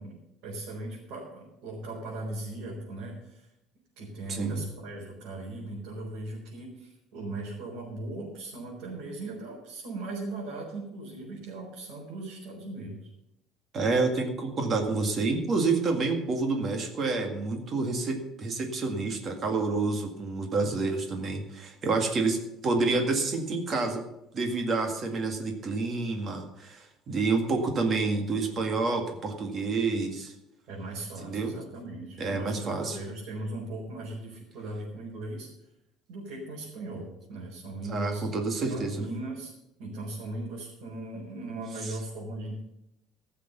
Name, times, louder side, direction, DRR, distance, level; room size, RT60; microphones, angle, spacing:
voice 1, 0.0-3.5 4.0-13.1 30.7-35.5 36.1-38.2 38.6-39.5 39.8-42.6, right 2 dB, 70° right, -5 dB, 4.4 m, -38 dB
voice 2, 4.3-4.6 13.7-24.0 24.3-30.3 31.2-31.5 32.2-33.0 37.9-39.0 41.8-42.0, right 3 dB, 30° right, 4 dB, 2.0 m, -28 dB
15.0 x 6.8 x 6.8 m, 0.86 s
cardioid pair, 165°, 0 cm